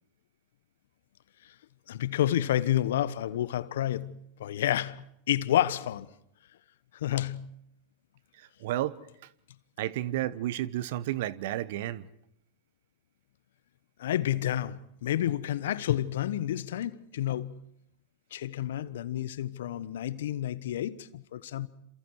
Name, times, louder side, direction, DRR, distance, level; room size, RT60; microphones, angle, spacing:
voice 1, 1.9-5.0 5.3-6.1 6.9-7.5 14.0-17.5 18.3-21.7, left 12 dB, 70° left, 1.2 m, -29 dB
voice 2, 8.4-9.0 9.8-12.1, right 14 dB, 65° right, 1.2 m, -32 dB
28.0 x 27.5 x 4.8 m
hypercardioid pair, 95°, 0 cm